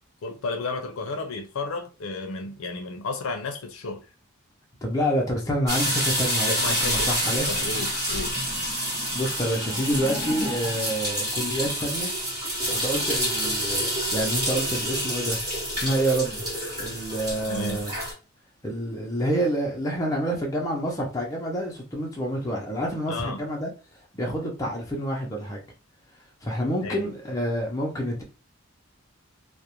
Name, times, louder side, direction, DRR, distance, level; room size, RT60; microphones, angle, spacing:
voice 1, 0.2-4.1 6.5-7.1 7.5-8.3 17.5-17.9 23.1-23.4 26.8-27.1, left 3 dB, 70° left, 0.5 m, -32 dB
voice 2, 4.8-7.6 9.1-12.1 12.8-15.4 15.7-16.4 16.8-17.9 18.6-23.7 24.1-25.6 26.4-28.2, right 1 dB, 15° left, 0.5 m, -28 dB
sound 1, 5.7-18.1, equal, 15° right, 1.1 m, -28 dB
2.4 x 2.0 x 2.9 m
head